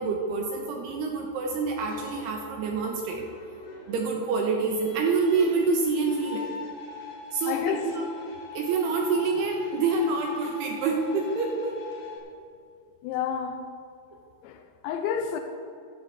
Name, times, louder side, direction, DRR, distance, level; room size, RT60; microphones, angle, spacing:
voice 1, 0.0-3.2 3.9-6.5 7.3-8.0 8.5-11.8, right 4 dB, 85° right, 1 dB, 2.4 m, -27 dB
sound 1, 1.9-12.2, left 5 dB, 65° left, 4.5 m, -43 dB
voice 2, 7.5-7.9 13.0-13.6 14.4-15.4, left 8 dB, 85° left, 5 dB, 2.6 m, -30 dB
15.5 x 11.5 x 3.4 m, 2.4 s
omnidirectional pair, 5.9 m